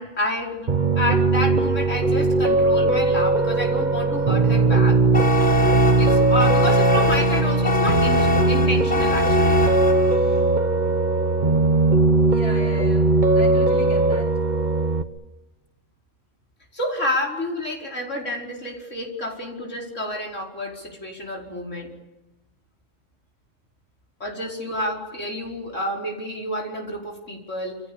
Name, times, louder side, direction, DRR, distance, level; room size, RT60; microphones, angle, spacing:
voice 1, 0.0-5.0 6.0-9.6 12.6-12.9 16.7-21.9 24.2-27.8, left 1 dB, 65° left, -1 dB, 5.5 m, -29 dB
Piano, 0.7-15.0, right 3 dB, 35° right, 1.4 m, -19 dB
sound 1, 5.1-10.4, left 3 dB, 5° left, 6.7 m, -24 dB
voice 2, 12.3-14.3, left 3 dB, 50° left, -1 dB, 4.9 m, -35 dB
28.5 x 27.5 x 7.2 m, 1.0 s
omnidirectional pair, 1.4 m